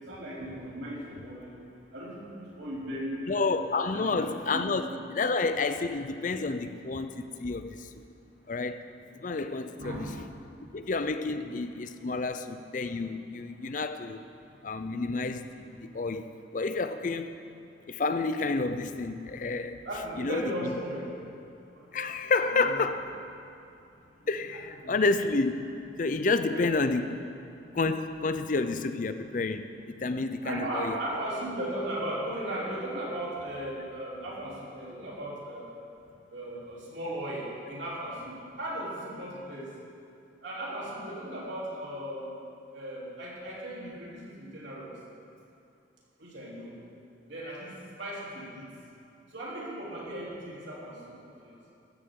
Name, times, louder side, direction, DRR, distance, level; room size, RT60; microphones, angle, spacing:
voice 1, 0.1-1.5 1.9-3.5 3.9-4.9 9.7-10.2 11.2-11.5 13.6-13.8 14.8-14.9 19.9-21.1 21.7-22.0 22.4-22.8 24.2-25.0 26.5-26.8 30.4-35.8 36.3-39.7 40.4-42.4 42.7-45.0 46.2-46.7 47.3-48.7 49.3-51.6, right 1 dB, 70° right, -6 dB, 3.4 m, -37 dB
voice 2, 3.3-7.9 8.5-8.8 9.1-10.0 10.7-14.3 14.6-17.4 17.9-19.8 20.2-20.7 21.9-23.0 24.3-25.7 26.0-27.2 27.7-31.0, left 3 dB, 45° left, 10 dB, 0.5 m, -30 dB
15.5 x 13.0 x 3.8 m, 2.5 s
head